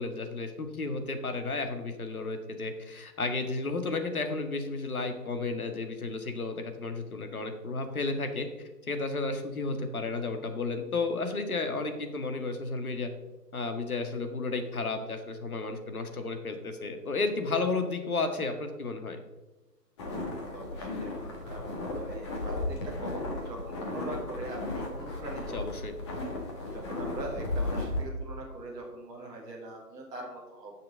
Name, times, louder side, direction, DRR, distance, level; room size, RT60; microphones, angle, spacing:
voice 1, 0.0-13.1 13.5-19.2 25.5-25.9, left 3 dB, 60° left, 6 dB, 1.9 m, -33 dB
sound 1, 20.0-28.0, left 2 dB, 15° left, 1.4 m, -35 dB
voice 2, 20.5-25.7 26.7-30.7, right 2 dB, 10° right, -4 dB, 1.7 m, -42 dB
10.5 x 6.7 x 6.5 m, 1.1 s
figure-of-eight pair, 145°, 49 cm